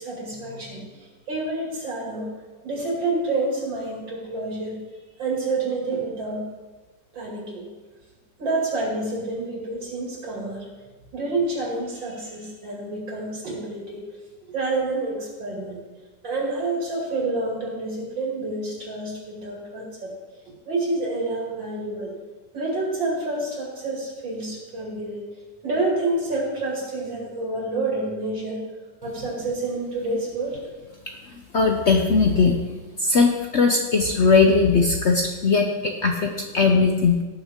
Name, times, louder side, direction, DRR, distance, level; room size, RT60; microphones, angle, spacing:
voice 1, 0.0-2.3 2.6-4.8 5.2-6.5 7.1-7.6 8.4-10.6 11.1-14.0 14.5-15.8 16.2-20.1 20.7-22.1 22.5-25.2 25.6-28.6 29.0-30.6, right 2 dB, 80° right, -3 dB, 3.3 m, -28 dB
voice 2, 31.5-32.6 33.0-37.2, left 4 dB, 55° left, 3 dB, 0.7 m, -19 dB
18.0 x 6.7 x 3.7 m, 1.3 s
omnidirectional pair, 2.0 m